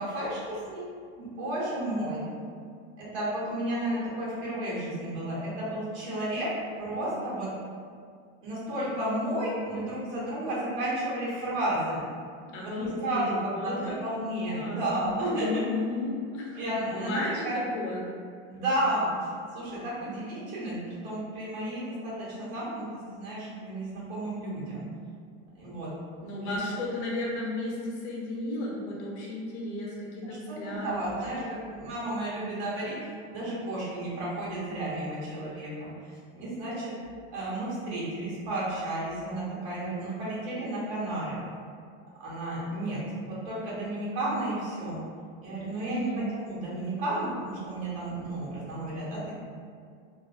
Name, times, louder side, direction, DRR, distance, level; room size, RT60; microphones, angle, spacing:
voice 1, 0.0-2.2 3.0-6.5 6.8-7.5 8.4-12.0 12.6-13.2 13.6-15.6 16.5-17.6 18.5-24.8 25.5-25.9 26.4-26.6 30.2-35.9 36.3-36.9 37.3-41.4 42.2-43.0 43.2-45.0 45.4-49.3, right 1 dB, 80° right, -7 dB, 1.1 m, -32 dB
voice 2, 12.4-14.0 14.5-18.1 26.2-31.1 31.5-31.6 45.9-46.2, left 2 dB, 80° left, -3 dB, 0.8 m, -34 dB
2.4 x 2.0 x 2.5 m, 2.1 s
supercardioid pair, 165°, 33 cm